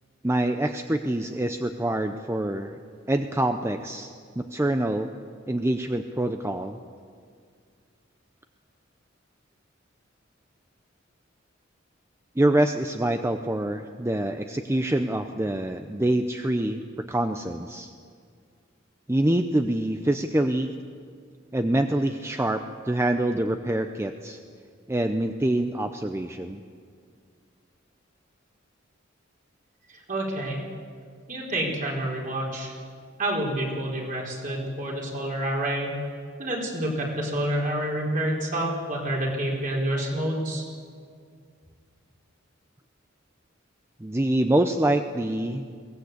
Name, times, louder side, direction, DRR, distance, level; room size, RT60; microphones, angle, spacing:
voice 1, 0.2-2.8 3.1-5.1 5.5-6.8 12.4-16.8 17.1-17.9 19.1-20.7 21.5-24.4 24.9-26.6 44.0-45.7, right 1 dB, 15° right, 7 dB, 0.6 m, -25 dB
voice 2, 30.1-30.6 31.3-32.7 33.2-35.9 36.4-40.6, right 1 dB, 45° right, -2 dB, 4.7 m, -28 dB
22.5 x 18.0 x 8.3 m, 2.1 s
head